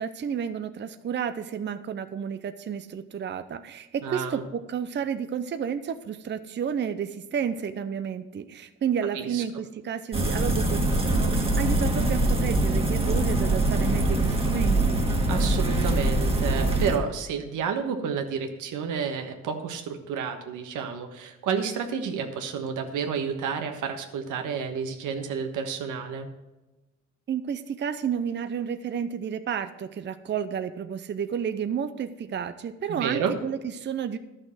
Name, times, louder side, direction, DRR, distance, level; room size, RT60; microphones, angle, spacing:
voice 1, 0.0-15.0 27.3-34.2, right 7 dB, 35° right, 10 dB, 0.6 m, -31 dB
voice 2, 4.0-4.4 9.1-9.4 15.3-26.3 32.9-33.3, right 6 dB, 85° right, 5 dB, 1.4 m, -30 dB
sound 1, 10.1-17.0, right 2 dB, 20° right, 1.8 m, -23 dB
11.5 x 6.5 x 6.3 m, 1.1 s
cardioid pair, 90°, 30 cm